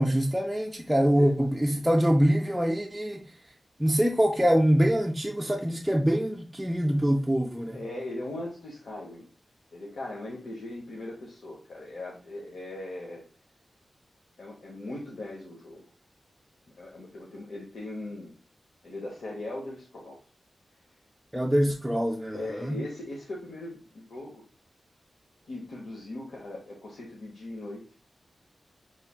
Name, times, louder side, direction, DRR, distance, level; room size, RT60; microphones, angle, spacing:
voice 1, 0.0-3.3 3.8-7.8 21.3-22.8, equal, 5° right, 0.4 m, -24 dB
voice 2, 1.0-1.4 7.7-9.3 9.7-13.2 14.4-15.8 16.8-18.3 18.8-20.2 22.3-24.4 25.5-27.8, left 2 dB, 85° left, 0.9 m, -39 dB
5.6 x 3.1 x 2.3 m
wide cardioid pair, 130°, 0 cm